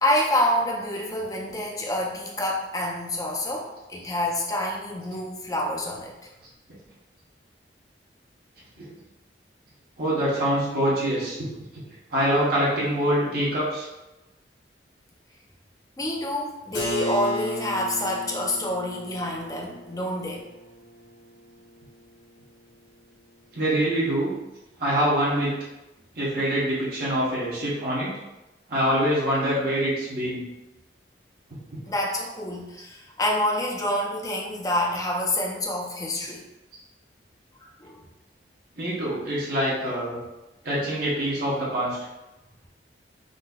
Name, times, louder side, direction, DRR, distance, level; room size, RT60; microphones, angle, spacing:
voice 1, 0.0-6.1 16.0-20.4 31.9-36.4 37.8-38.0, left 1 dB, 20° left, -1 dB, 0.5 m, -27 dB
voice 2, 10.0-11.5 11.7-11.8 12.1-13.9 23.5-24.3 24.8-25.5 26.1-28.1 28.7-30.4 31.5-31.8 36.7-36.8 38.8-40.2 40.6-42.0, equal, 55° right, -7 dB, 0.9 m, -25 dB
Keyboard (musical), 16.7-22.3, left 1 dB, 70° left, 0.8 m, -35 dB
3.8 x 2.6 x 2.3 m, 0.99 s
head